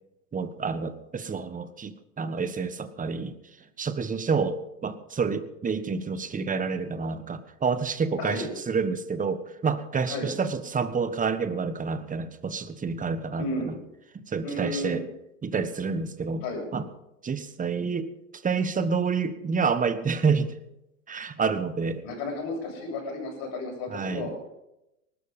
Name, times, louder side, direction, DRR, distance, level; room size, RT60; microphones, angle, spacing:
voice 1, 0.3-3.3 3.8-13.7 14.1-15.0 15.4-16.4 16.7-16.9 17.2-18.1 18.4-20.5 21.1-22.0 23.9-24.3, right 5 dB, 20° right, 12 dB, 1.4 m, -28 dB
voice 2, 8.2-8.5 10.1-10.3 13.4-13.7 14.4-15.0 16.4-16.6 22.0-24.3, left 2 dB, 55° left, 1 dB, 7.8 m, -33 dB
19.5 x 12.5 x 5.4 m, 0.88 s
hypercardioid pair, 95°, 41 cm